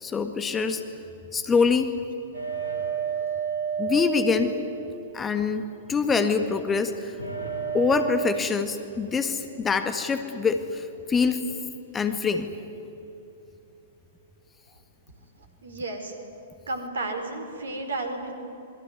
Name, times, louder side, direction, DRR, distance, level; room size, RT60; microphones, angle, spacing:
voice 1, 0.0-0.8 1.3-1.9 3.8-4.5 5.1-7.2 7.7-11.4 11.9-12.5, left 5 dB, 15° left, 8 dB, 1.7 m, -25 dB
sound 1, 2.3-5.3 7.2-8.3, right 7 dB, 85° right, 8.0 m, -30 dB
voice 2, 15.6-16.1 16.7-18.3, right 2 dB, 65° right, 6 dB, 4.5 m, -32 dB
26.5 x 21.5 x 9.6 m, 2.9 s
figure-of-eight pair, 105°, 0 cm